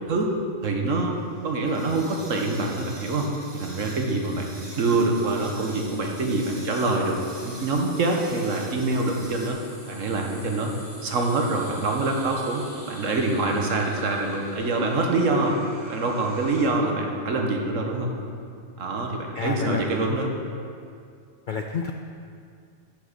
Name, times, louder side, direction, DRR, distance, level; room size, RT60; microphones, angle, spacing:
voice 1, 0.6-1.1 1.4-3.3 3.5-7.2 7.4-9.6 9.9-10.7 11.0-15.6 15.9-18.1 18.8-20.3, right 2 dB, 75° right, 1 dB, 1.5 m, -25 dB
sound 1, 1.1-9.5, right 1 dB, 20° right, 0.9 m, -45 dB
sound 2, 4.2-16.7, equal, 40° left, 2.8 m, -47 dB
voice 2, 19.3-19.9 21.5-21.9, left 6 dB, 65° left, 4 dB, 0.5 m, -28 dB
8.5 x 6.2 x 6.8 m, 2.3 s
omnidirectional pair, 1.3 m